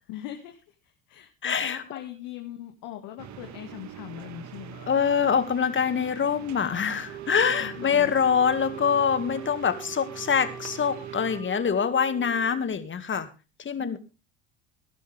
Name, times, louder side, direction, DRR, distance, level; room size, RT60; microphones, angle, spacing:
voice 1, 0.1-4.8 7.4-8.1 13.8-14.0, left 13 dB, 65° left, 4 dB, 2.1 m, -41 dB
voice 2, 1.4-1.8 4.8-13.3 13.6-14.0, left 7 dB, 30° left, 11 dB, 2.1 m, -25 dB
sound 1, 3.2-11.4, right 9 dB, 50° right, 1.6 m, -44 dB
Wind instrument woodwind instrument, 7.1-12.7, right 8 dB, 90° right, 3.4 m, -42 dB
18.5 x 11.5 x 3.5 m, 0.30 s
hypercardioid pair, 70°, 37 cm